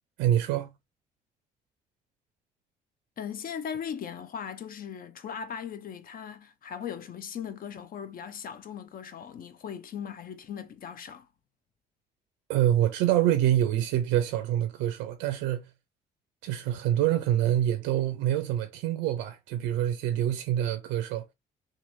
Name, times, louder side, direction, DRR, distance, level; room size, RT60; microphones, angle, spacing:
voice 1, 0.2-0.7 12.5-15.7 16.4-21.2, right 12 dB, 60° right, 0.4 m, -26 dB
voice 2, 3.2-11.3, left 8 dB, 45° left, 0.6 m, -38 dB
2.8 x 2.5 x 2.6 m
hypercardioid pair, 50°, 21 cm